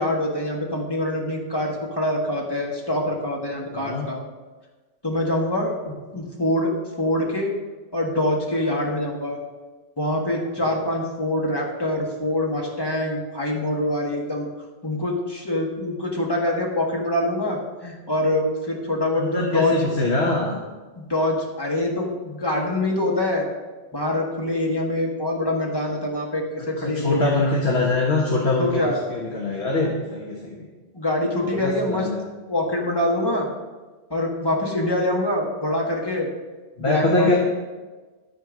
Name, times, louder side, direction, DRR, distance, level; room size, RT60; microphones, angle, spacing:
voice 1, 0.0-4.2 5.0-7.5 7.9-9.4 10.0-14.5 14.8-19.9 21.0-23.5 23.9-27.5 28.6-29.0 30.9-32.1 32.5-33.5 34.1-36.3 36.8-37.4, left 1 dB, 20° left, -2 dB, 1.7 m, -25 dB
voice 2, 3.7-4.1 19.2-20.6 26.8-30.7 31.4-32.2 36.8-37.4, left 2 dB, 65° left, -3 dB, 1.6 m, -23 dB
13.0 x 4.5 x 6.6 m, 1.3 s
omnidirectional pair, 1.2 m